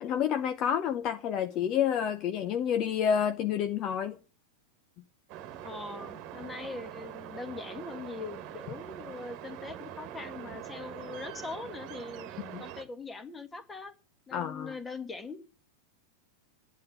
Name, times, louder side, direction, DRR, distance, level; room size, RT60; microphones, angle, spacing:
voice 1, 0.0-4.2 12.5-12.6 14.3-14.7, left 8 dB, 35° left, 0.9 m, -29 dB
sound 1, 5.3-12.8, right 11 dB, 40° right, 1.6 m, -43 dB
voice 2, 5.6-12.3 12.6-13.9 14.3-15.5, left 4 dB, 15° left, 1.8 m, -41 dB
11.0 x 9.2 x 7.6 m
figure-of-eight pair, 90°, 0 cm